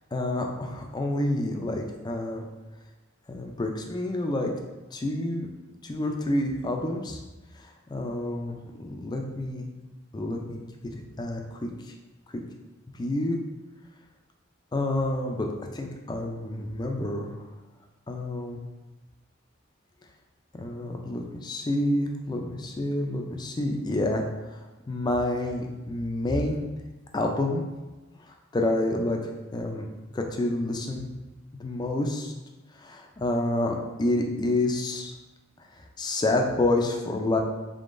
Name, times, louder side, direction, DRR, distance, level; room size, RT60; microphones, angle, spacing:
voice 1, 0.1-2.4 3.3-4.5 4.9-5.5 5.8-7.2 7.6-9.7 10.1-10.6 11.2-11.7 12.9-13.4 14.7-17.4 18.1-18.6 20.5-26.7 27.1-27.6 28.5-29.9 30.1-31.1 31.6-32.3 32.8-35.1 35.7-37.4, left 1 dB, 20° left, 2 dB, 0.4 m, -28 dB
3.6 x 3.6 x 2.5 m, 1.2 s
head